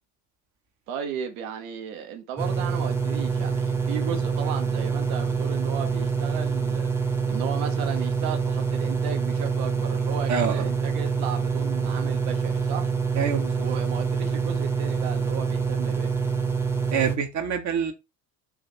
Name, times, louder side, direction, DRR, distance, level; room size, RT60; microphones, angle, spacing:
voice 1, 0.9-6.9 7.3-12.9 13.6-16.1, right 8 dB, 60° right, 1.0 m, -35 dB
sound 1, 2.4-17.1, right 5 dB, 5° right, 0.8 m, -26 dB
voice 2, 10.3-10.7 13.1-13.7 16.9-17.9, right 7 dB, 35° right, 0.7 m, -26 dB
3.8 x 2.4 x 2.8 m
figure-of-eight pair, 60°, 49 cm